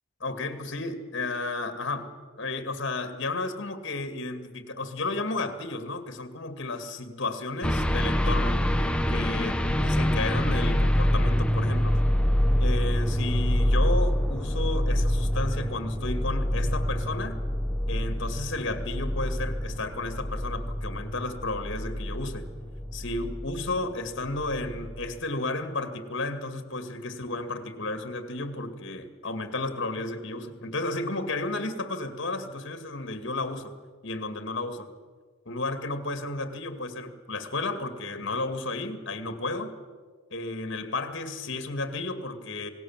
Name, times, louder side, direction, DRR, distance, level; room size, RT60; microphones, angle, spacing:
voice 1, 0.2-8.6 9.1-12.0 12.6-17.4 17.9-22.5 22.9-33.7 34.0-34.9 35.5-39.7 40.3-42.7, left 2 dB, 60° left, 8 dB, 2.2 m, -33 dB
sound 1, 7.6-23.8 24.2-25.1, equal, 5° left, 0.9 m, -26 dB
27.5 x 18.5 x 7.4 m, 1.5 s
head